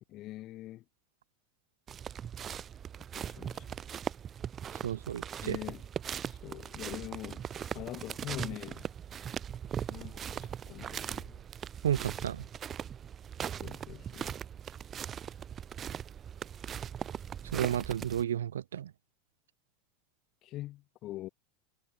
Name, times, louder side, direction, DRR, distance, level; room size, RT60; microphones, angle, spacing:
voice 1, 0.1-0.8 3.1-3.8 5.4-7.5 7.7-8.9 9.9-11.4 13.6-14.3 20.4-21.3, left 15 dB, 45° left, 3.2 m, -44 dB
sound 1, 1.9-18.2, right 8 dB, 30° right, 1.8 m, -40 dB
voice 2, 4.8-5.6 11.8-12.4 17.5-18.9, right 10 dB, 75° right, 0.9 m, -32 dB
figure-of-eight pair, 80°, 0 cm